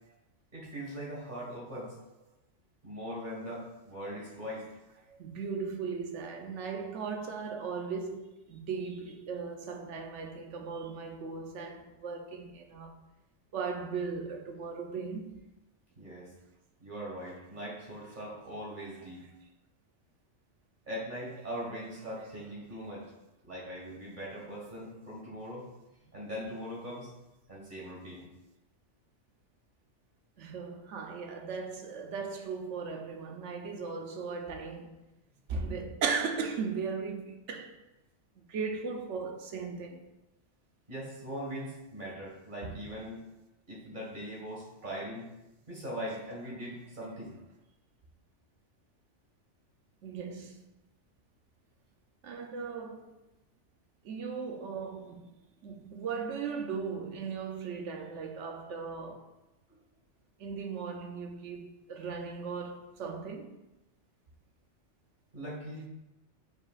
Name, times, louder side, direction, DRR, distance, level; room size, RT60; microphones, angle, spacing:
voice 1, 0.5-2.0 2.8-4.7 16.0-16.3 16.8-19.2 20.9-23.1 23.4-25.7 26.1-27.1 27.5-28.3 40.9-43.3 43.7-45.3 45.7-47.4 59.7-59.8 65.3-65.8, equal, 40° right, 2.0 m, -40 dB
voice 2, 5.1-13.0 13.5-15.4 30.4-35.0 35.5-37.8 38.4-40.1 42.6-42.8 50.0-50.6 52.2-53.1 54.0-55.3 55.6-59.3 60.4-63.6, right 5 dB, 75° right, 1.1 m, -37 dB
8.4 x 4.7 x 2.5 m
omnidirectional pair, 1.2 m